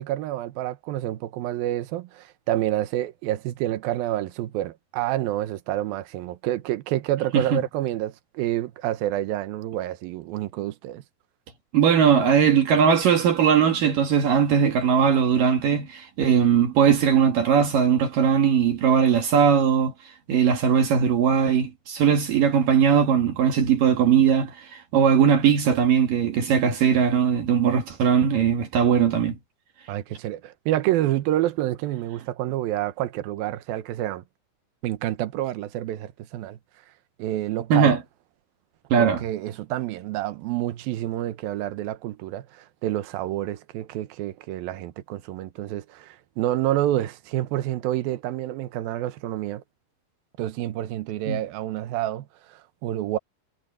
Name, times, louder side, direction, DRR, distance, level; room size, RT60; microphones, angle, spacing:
voice 1, 0.0-11.0 29.9-34.2 34.8-36.6 37.2-37.9 39.0-49.6 50.4-53.2, right 14 dB, 80° right, 2.8 m, -28 dB
voice 2, 11.7-19.9 20.3-29.4 37.7-38.0 38.9-39.2 51.3-51.4, right 7 dB, 65° right, 3.3 m, -19 dB
omnidirectional pair, 4.3 m